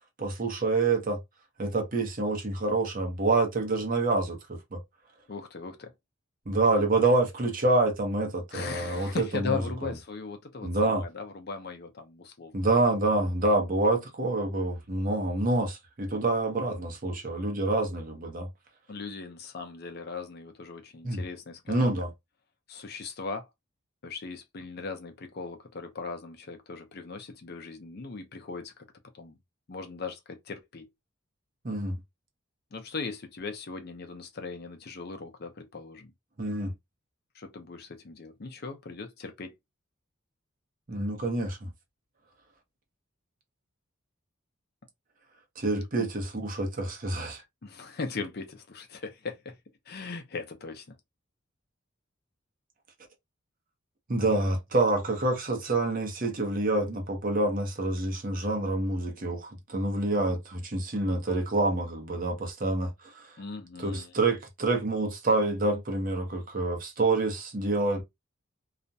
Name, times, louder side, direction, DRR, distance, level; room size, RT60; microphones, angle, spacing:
voice 1, 0.2-1.2 1.6-4.8 6.5-9.6 10.6-11.0 12.5-18.5 21.0-21.2 21.7-22.1 31.6-32.0 36.4-36.7 40.9-41.7 45.6-47.4 54.1-63.3 63.8-68.0, right 2 dB, 40° right, 0.7 m, -27 dB
voice 2, 5.3-5.9 8.5-12.7 18.9-21.9 22.7-23.5 24.0-28.8 29.1-29.4 29.7-30.9 32.7-36.1 37.3-39.5 46.0-46.1 47.6-49.6 49.9-51.0 63.4-64.1, left 4 dB, 50° left, 0.5 m, -38 dB
2.4 x 2.1 x 2.6 m
head